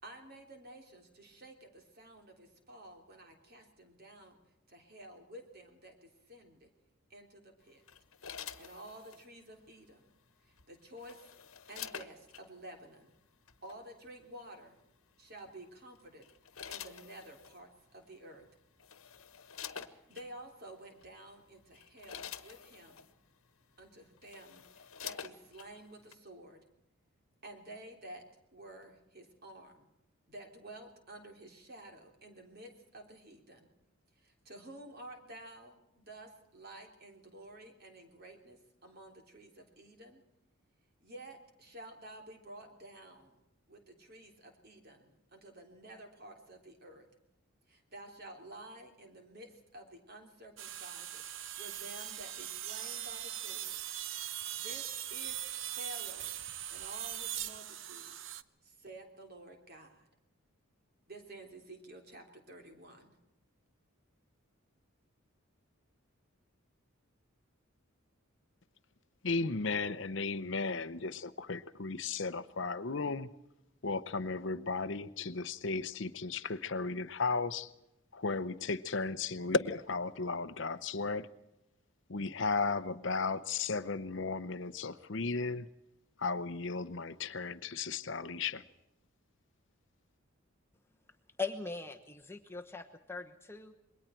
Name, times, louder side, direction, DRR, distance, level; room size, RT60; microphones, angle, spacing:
voice 1, 0.0-4.4 4.7-6.7 7.1-7.8 8.6-10.2 10.4-11.3 11.7-13.1 13.6-14.8 15.2-16.2 16.7-18.4 19.8-23.1 23.8-26.6 27.4-28.2 28.5-29.9 30.3-33.7 34.2-40.2 41.0-47.1 47.7-53.8 54.5-56.3 56.7-58.2 58.6-60.1 61.1-63.2, right 1 dB, 45° right, 3 dB, 3.5 m, -52 dB
sound 1, 7.9-9.3 10.6-12.4 13.5-13.7 15.4-15.7 16.2-17.6 18.4-18.5 18.8-20.3 21.0-21.2 21.6-23.1 23.8-23.9 24.2-25.7 26.1-26.2, left 8 dB, 80° left, 1.3 m, -47 dB
sound 2, 50.6-58.4, right 11 dB, 65° right, 0.8 m, -40 dB
voice 2, 69.2-73.3 73.8-77.7 78.1-81.3 82.1-85.7 86.2-88.6, left 4 dB, 55° left, 13 dB, 0.8 m, -35 dB
voice 3, 91.4-93.8, left 4 dB, 10° left, 3 dB, 1.0 m, -40 dB
27.5 x 22.0 x 4.5 m, 0.91 s
head